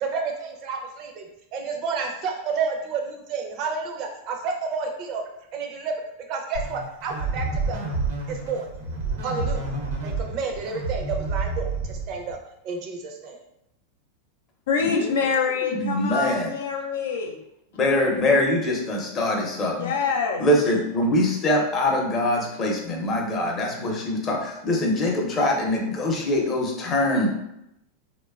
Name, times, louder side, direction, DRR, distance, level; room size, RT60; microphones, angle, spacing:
voice 1, 0.0-1.3 1.5-5.2 5.5-6.0 6.3-7.8 8.3-8.7 9.2-9.6 10.0-12.4 12.6-13.4, right 5 dB, 45° right, 2 dB, 0.5 m, -30 dB
sound 1, 6.5-12.4, right 3 dB, 80° right, 0.7 m, -29 dB
voice 2, 14.7-17.3 19.8-20.4, left 5 dB, 80° left, 2 dB, 0.3 m, -25 dB
voice 3, 15.7-16.5 17.7-19.9 20.4-27.3, left 1 dB, 30° left, 0 dB, 0.6 m, -23 dB
2.8 x 2.2 x 2.3 m, 0.82 s
supercardioid pair, 125°, 0 cm